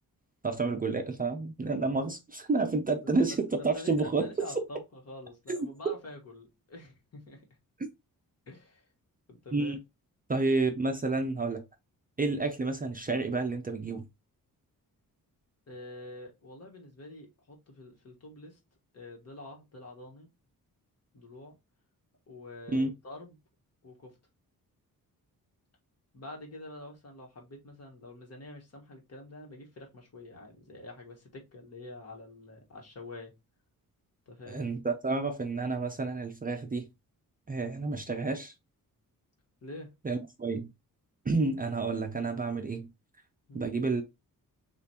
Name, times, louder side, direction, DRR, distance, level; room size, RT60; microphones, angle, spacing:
voice 1, 0.4-4.3 5.5-5.6 9.5-9.8 10.3-11.6 12.2-14.0 22.7-22.9 34.5-36.9 37.5-38.5 40.0-40.7 41.3-42.9 43.5-44.0, right 3 dB, 25° right, 0.5 m, -30 dB
voice 2, 3.0-7.5 8.5-8.9 9.3-9.8 15.7-18.6 18.9-20.3 21.1-21.6 22.3-23.4 23.8-24.2 26.1-33.3 34.3-34.7 37.5-37.7 39.6-39.9 43.5-43.6, left 2 dB, 45° left, 1.5 m, -47 dB
6.8 x 2.5 x 2.8 m
wide cardioid pair, 150°, 35 cm